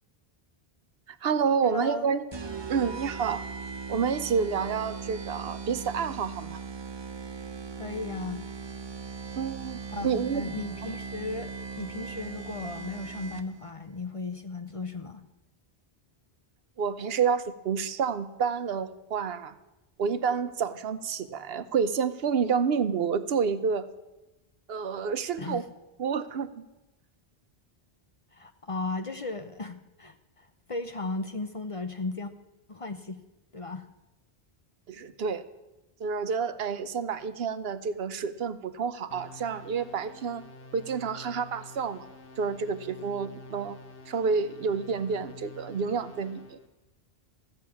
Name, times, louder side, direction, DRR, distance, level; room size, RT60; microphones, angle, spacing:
voice 1, 1.1-2.3 2.7-3.4 3.9-6.6 9.4-9.8 10.0-10.5 16.8-19.5 20.0-23.9 24.7-25.6 26.0-26.6 34.9-35.5 36.0-40.4 40.7-42.0 42.4-43.8 44.1-46.6, right 6 dB, 70° right, 12 dB, 0.9 m, -29 dB
voice 2, 1.6-2.1 7.8-8.5 9.9-15.2 25.4-25.7 28.3-32.3 32.7-33.2 33.5-33.9, left 3 dB, 35° left, 8 dB, 0.7 m, -36 dB
sound 1, 2.3-13.7, right 5 dB, 30° right, 0.6 m, -39 dB
sound 2, 39.1-46.7, left 2 dB, 60° left, 1.3 m, -48 dB
14.5 x 6.3 x 8.4 m, 1.0 s
omnidirectional pair, 1.1 m